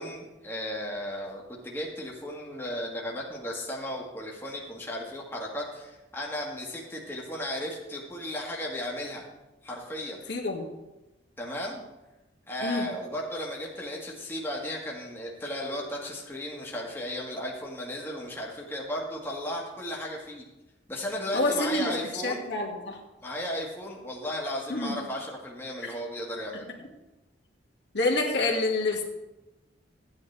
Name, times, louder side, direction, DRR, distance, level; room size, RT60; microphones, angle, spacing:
voice 1, 0.0-9.2 9.6-10.2 11.4-11.8 12.5-20.4 20.9-22.5 23.2-26.7, left 1 dB, 10° left, -2 dB, 1.5 m, -35 dB
voice 2, 10.3-10.6 12.6-12.9 21.3-21.9 22.2-23.0 24.7-25.0 27.9-29.0, left 2 dB, 65° left, 1 dB, 1.8 m, -27 dB
13.5 x 9.4 x 3.3 m, 1.0 s
head